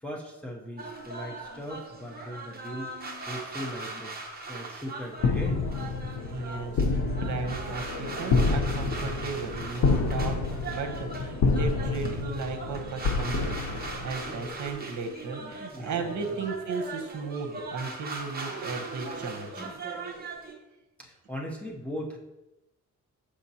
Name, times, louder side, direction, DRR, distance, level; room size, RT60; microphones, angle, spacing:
voice 1, 0.0-2.9 3.3-4.1 4.5-5.6 15.7-16.1 21.0-22.2, equal, 5° left, -2 dB, 0.8 m, -38 dB
sound 1, 0.8-20.5, right 3 dB, 30° right, 0.9 m, -40 dB
sound 2, 5.2-14.7, left 4 dB, 85° left, 0.6 m, -28 dB
voice 2, 6.3-19.6, right 4 dB, 70° right, 6 dB, 0.9 m, -35 dB
7.2 x 5.1 x 2.8 m, 0.96 s
wide cardioid pair, 135°, 30 cm